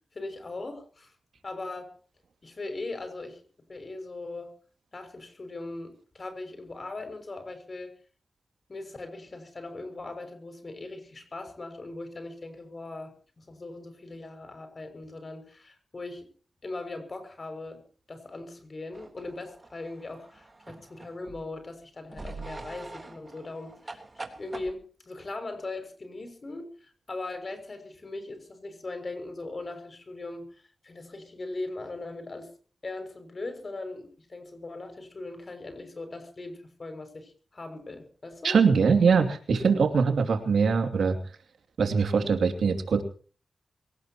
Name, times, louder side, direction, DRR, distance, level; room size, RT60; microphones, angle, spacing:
voice 1, 0.1-1.1 1.4-1.9 2.4-3.4 3.7-4.5 4.9-7.9 8.7-16.3 16.6-17.8 18.1-24.0 24.3-30.5 30.8-32.5 32.8-38.6 42.2-42.3, left 2 dB, 50° left, 8 dB, 6.4 m, -39 dB
sound 1, 18.9-21.5 22.1-24.7, right 3 dB, 35° right, 3.5 m, -44 dB
voice 2, 38.4-41.2 41.8-43.0, right 5 dB, 85° right, 6 dB, 2.8 m, -22 dB
23.0 x 18.5 x 3.0 m, 0.41 s
cardioid pair, 60°, 0 cm